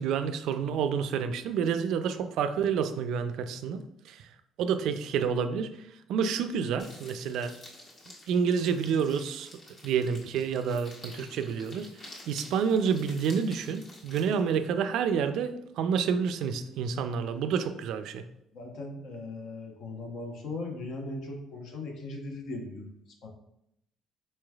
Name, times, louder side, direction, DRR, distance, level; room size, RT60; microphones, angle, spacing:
voice 1, 0.0-3.8 4.1-4.2 4.6-5.7 6.1-7.5 8.3-9.5 9.8-11.9 12.3-18.2, right 6 dB, 75° right, 9 dB, 0.3 m, -29 dB
sound 1, 6.8-14.6, left 1 dB, 50° left, 1.3 m, -50 dB
voice 2, 18.5-22.9 23.2-23.3, left 2 dB, 70° left, 2 dB, 0.9 m, -38 dB
4.4 x 3.1 x 2.3 m, 0.79 s
cardioid pair, 90°, 0 cm